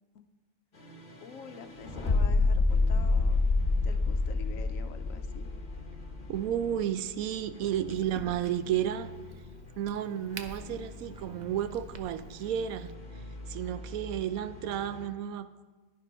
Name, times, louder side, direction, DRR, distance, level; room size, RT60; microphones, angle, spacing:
sound 1, 0.7-15.1, left 3 dB, 35° left, 1.2 m, -32 dB
voice 1, 1.2-3.4 3.8-5.5 8.3-8.4, left 7 dB, 70° left, 9 dB, 1.0 m, -46 dB
voice 2, 6.3-9.1 9.8-12.9 13.5-15.7, right 10 dB, 75° right, 12 dB, 1.0 m, -32 dB
Crack, 7.9-12.9, right 3 dB, 45° right, 0.6 m, -50 dB
10.5 x 10.5 x 4.2 m, 1.3 s
omnidirectional pair, 1.5 m